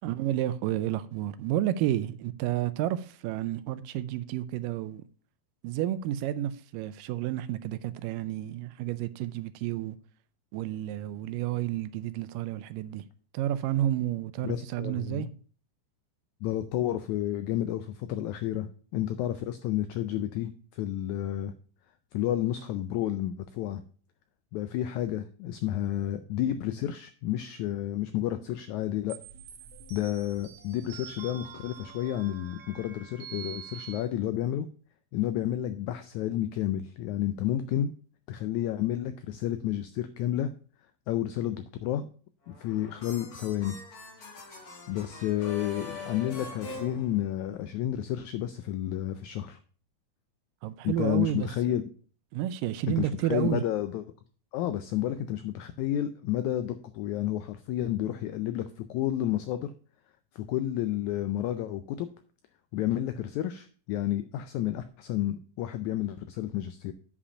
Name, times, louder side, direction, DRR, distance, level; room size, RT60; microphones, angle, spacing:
voice 1, 0.0-5.0 5.6-10.0 10.5-13.0 13.3-15.3 50.6-51.8 52.3-53.6, right 12 dB, 80° right, 2.2 m, -31 dB
voice 2, 14.4-15.3 16.4-21.5 22.1-23.8 24.5-29.2 29.9-34.7 35.1-37.9 38.3-40.5 41.1-42.1 42.5-43.8 44.9-49.6 50.8-51.8 53.0-54.0 54.5-59.7 60.3-62.1 62.7-66.9, left 12 dB, 85° left, 1.7 m, -31 dB
sound 1, 29.1-34.0, right 8 dB, 65° right, 2.0 m, -46 dB
sound 2, 42.4-47.8, left 3 dB, 45° left, 1.2 m, -43 dB
8.4 x 5.1 x 5.6 m
omnidirectional pair, 3.9 m